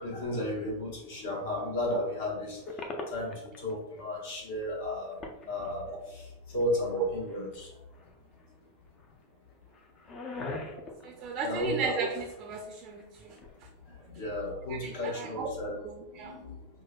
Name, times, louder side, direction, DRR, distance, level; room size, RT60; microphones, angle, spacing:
voice 1, 0.0-5.2 5.5-7.8 10.2-10.7 11.1-11.8 13.9-15.8 16.1-16.7, left 1 dB, 50° left, -2 dB, 1.1 m, -34 dB
sound 1, 2.7-3.7 4.0-4.1 4.6-4.7 5.0-6.1 6.6-7.6 7.9-8.5 8.8-9.2 9.6-12.5 12.7-13.6, left 2 dB, 30° left, 0.5 m, -43 dB
voice 2, 11.0-13.4 14.8-15.5 15.8-16.4, right 4 dB, 35° right, 1 dB, 0.5 m, -35 dB
5.8 x 2.2 x 2.2 m, 0.91 s
figure-of-eight pair, 90°, 0 cm